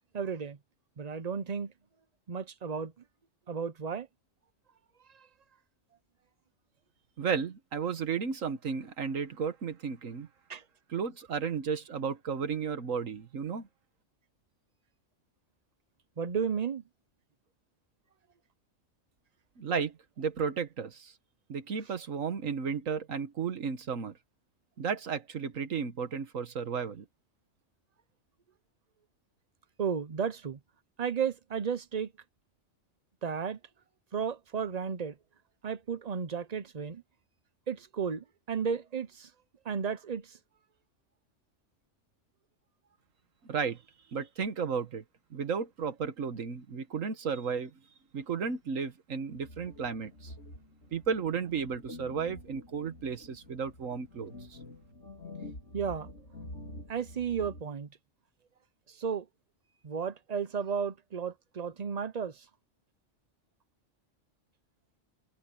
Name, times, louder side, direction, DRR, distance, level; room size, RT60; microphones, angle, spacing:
voice 1, 0.1-0.6 1.0-1.7 2.3-2.9 3.5-4.1 10.5-10.6 16.2-16.8 29.8-30.6 31.0-32.1 33.2-33.6 34.1-35.1 35.6-37.0 37.7-39.3 39.7-40.2 55.7-56.1 56.9-57.9 59.0-59.2 59.8-62.3, right 6 dB, 35° right, 0.8 m, -33 dB
voice 2, 7.2-10.3 10.9-13.6 19.6-21.1 21.5-24.1 24.8-27.0 43.5-43.8 44.1-45.0 45.3-47.7 48.1-50.3 50.9-54.3, right 6 dB, 80° right, 1.7 m, -33 dB
sound 1, 49.3-57.6, left 2 dB, 65° left, 4.4 m, -48 dB
omnidirectional pair, 1.3 m